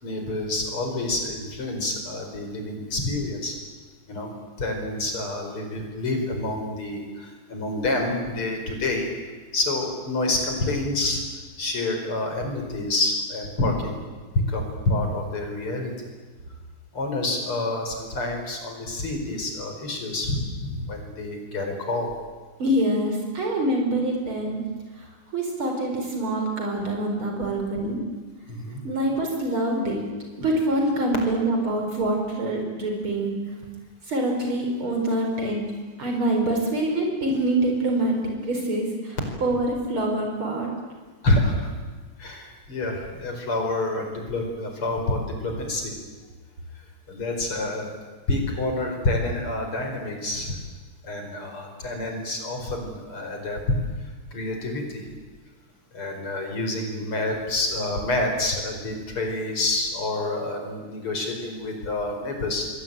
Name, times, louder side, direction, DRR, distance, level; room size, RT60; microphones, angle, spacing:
voice 1, 0.0-3.5 4.1-4.3 4.6-9.1 9.5-11.2 11.6-14.0 14.5-15.9 16.9-22.1 28.5-28.8 41.2-41.7 42.2-45.9 47.1-47.9 48.3-50.6 51.0-53.6 54.3-55.1 55.9-62.7, left 2 dB, 75° left, 3 dB, 6.0 m, -28 dB
voice 2, 22.6-24.6 25.0-28.0 28.8-30.0 30.4-33.4 34.1-35.7 36.0-38.2 38.4-40.7, right 1 dB, 70° right, 1 dB, 5.3 m, -25 dB
28.0 x 22.0 x 9.2 m, 1.4 s
omnidirectional pair, 2.4 m